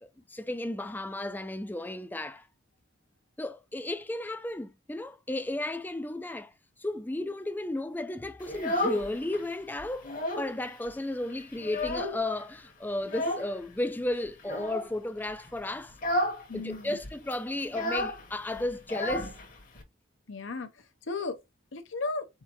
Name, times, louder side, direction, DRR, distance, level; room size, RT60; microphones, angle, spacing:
voice 1, 0.0-2.5 3.4-6.5 6.8-16.0 16.5-19.4, left 1 dB, 10° left, 0.3 m, -34 dB
Child speech kid speaking, 8.4-9.4 9.8-10.6 10.9-11.0 11.3-12.4 13.0-13.5 14.4-14.9 15.3-15.5 15.9-16.5 16.7-16.8 17.0-19.8, left 1 dB, 40° left, 1.0 m, -32 dB
voice 2, 16.5-17.0 20.3-21.4 21.7-22.3, left 3 dB, 75° left, 0.8 m, -35 dB
4.3 x 3.6 x 3.0 m
head